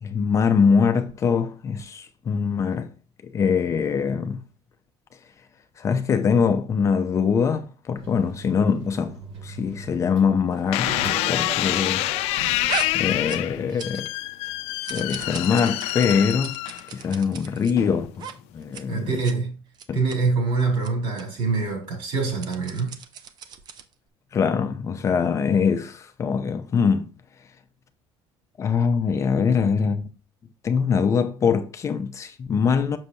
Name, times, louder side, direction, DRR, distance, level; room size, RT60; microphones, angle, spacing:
voice 1, 0.0-2.9 3.2-4.4 5.8-9.1 9.4-12.0 12.9-14.1 14.9-16.6 16.9-18.3 18.5-19.1 19.9-20.0 24.3-27.1 28.6-30.0 30.6-33.0, left 6 dB, 30° left, 0.5 m, -23 dB
sound 1, 7.9-13.3, right 3 dB, 80° right, 3.9 m, -39 dB
sound 2, 10.7-17.1 17.8-18.2, left 17 dB, 85° left, 0.4 m, -27 dB
sound 3, 12.7-14.2 14.4-17.7 18.1-18.3 18.6-18.8 19.1-19.3 19.7-20.2 20.7-20.9 21.2-21.3 22.0-23.9, right 7 dB, 45° right, 0.6 m, -37 dB
voice 2, 18.9-19.6 19.9-23.0, right 4 dB, 60° right, 3.9 m, -25 dB
6.5 x 6.2 x 2.7 m
cardioid pair, 155°, 10 cm